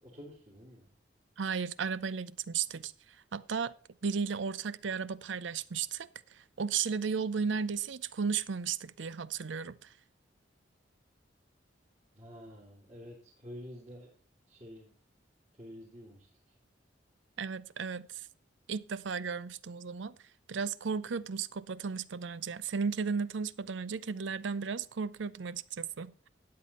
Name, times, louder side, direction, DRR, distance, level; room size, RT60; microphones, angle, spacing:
voice 1, 0.0-0.9 12.1-14.1 14.5-14.9 15.6-16.3, equal, 35° right, 3.2 m, -49 dB
voice 2, 1.4-2.9 3.3-3.7 4.0-9.9 17.4-18.3 18.7-20.2 20.5-26.3, right 6 dB, 80° right, 0.6 m, -35 dB
12.5 x 8.4 x 4.2 m
head